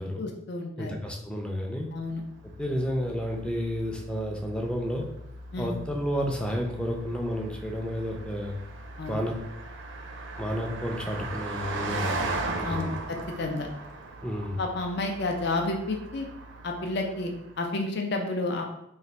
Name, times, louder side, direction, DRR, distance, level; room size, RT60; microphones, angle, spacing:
voice 1, 0.2-1.0 1.9-2.2 5.5-5.8 9.0-9.2 12.6-13.7 14.6-16.3 16.6-18.6, left 2 dB, 60° left, 2 dB, 0.5 m, -31 dB
voice 2, 0.8-1.9 2.6-5.1 5.6-8.6 9.1-9.3 10.4-12.3 12.6-12.9 14.2-14.6, equal, 5° left, 1 dB, 0.4 m, -31 dB
Car passing by, 1.9-17.6, right 2 dB, 75° right, 0.5 m, -38 dB
3.2 x 2.5 x 4.0 m, 0.82 s
head